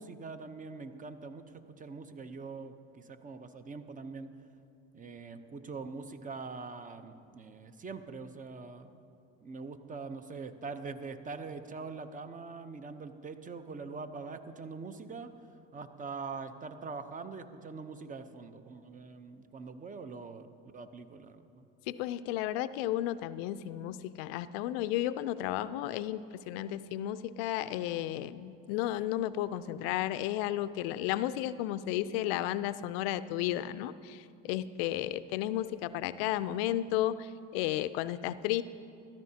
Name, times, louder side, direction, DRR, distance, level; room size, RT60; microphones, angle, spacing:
voice 1, 0.0-1.4 1.8-4.3 4.9-8.9 9.4-15.3 15.7-21.7, right 4 dB, 25° right, 10 dB, 0.7 m, -43 dB
voice 2, 21.9-38.6, left 13 dB, 80° left, 15 dB, 0.4 m, -33 dB
15.0 x 13.0 x 2.8 m, 2.5 s
supercardioid pair, 80°, 30 cm